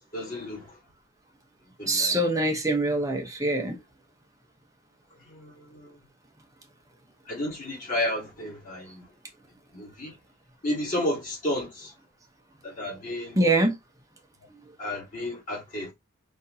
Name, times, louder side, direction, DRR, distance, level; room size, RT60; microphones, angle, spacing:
voice 1, 0.1-0.7 1.8-2.2 5.2-6.0 7.3-9.0 9.7-10.1 10.6-11.9 12.6-13.4 14.8-15.9, left 1 dB, 35° left, 2.7 m, -32 dB
voice 2, 1.9-3.8 13.4-13.8, right 2 dB, 15° right, 0.9 m, -24 dB
5.3 x 3.3 x 2.8 m
head